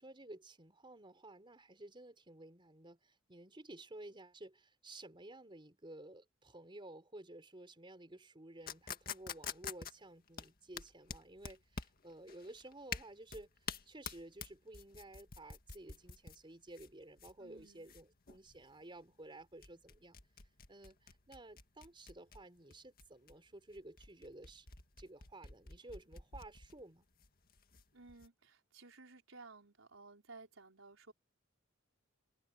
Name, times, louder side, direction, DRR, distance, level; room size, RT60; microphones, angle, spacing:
voice 1, 0.0-20.2 20.7-24.7 25.0-27.1, right 1 dB, 25° right, 4.0 m, -54 dB
sound 1, 8.7-28.3, left 6 dB, 50° left, 1.9 m, -48 dB
voice 2, 17.4-17.9 27.9-31.1, right 3 dB, 85° right, 4.5 m, -57 dB
head